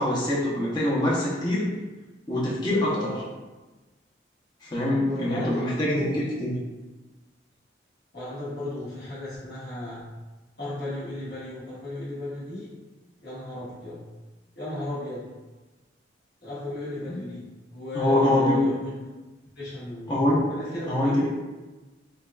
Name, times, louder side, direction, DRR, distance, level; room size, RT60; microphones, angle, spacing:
voice 1, 0.0-1.7 2.3-3.1 4.6-6.5 17.1-17.2 17.9-18.6 20.1-20.5 20.9-21.3, left 1 dB, 25° left, -7 dB, 0.8 m, -24 dB
voice 2, 2.9-3.3 4.9-5.6 5.9-6.5 8.1-10.0 10.6-12.7 13.2-14.0 14.6-15.3 16.4-19.0 19.5-20.2 20.5-21.1, left 1 dB, 60° left, -11 dB, 1.4 m, -35 dB
5.5 x 2.3 x 2.3 m, 1.2 s
head